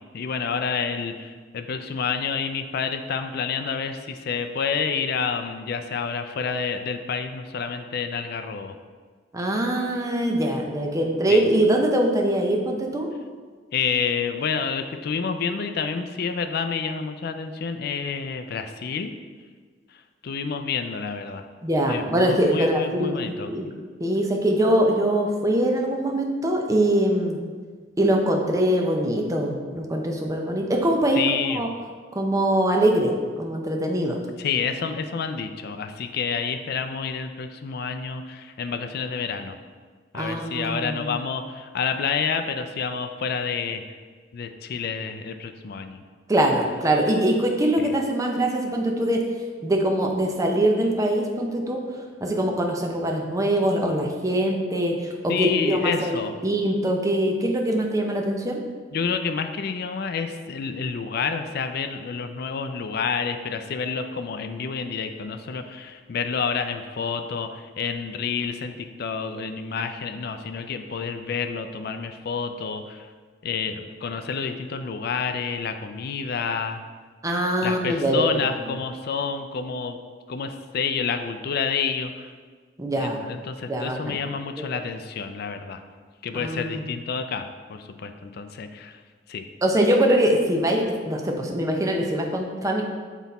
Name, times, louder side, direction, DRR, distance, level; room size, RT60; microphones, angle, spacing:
voice 1, 0.1-8.8 11.3-11.4 13.7-19.1 20.2-21.5 21.9-23.5 31.2-31.7 34.4-39.6 40.1-43.8 44.3-46.0 47.8-47.9 55.3-56.3 58.9-73.1 73.4-76.8 77.6-80.0 80.3-82.3 82.9-85.8 86.2-89.0 89.3-89.5, left 6 dB, 60° left, 7 dB, 0.4 m, -29 dB
voice 2, 9.3-13.1 21.6-23.7 24.0-27.4 28.0-31.2 31.5-31.7 32.1-34.2 40.1-41.2 46.3-49.2 49.6-58.6 77.2-78.4 82.8-83.2 83.7-84.2 84.6-84.7 86.3-86.9 89.6-92.8, right 1 dB, 20° right, 1 dB, 0.7 m, -23 dB
6.1 x 4.0 x 4.2 m, 1.5 s
head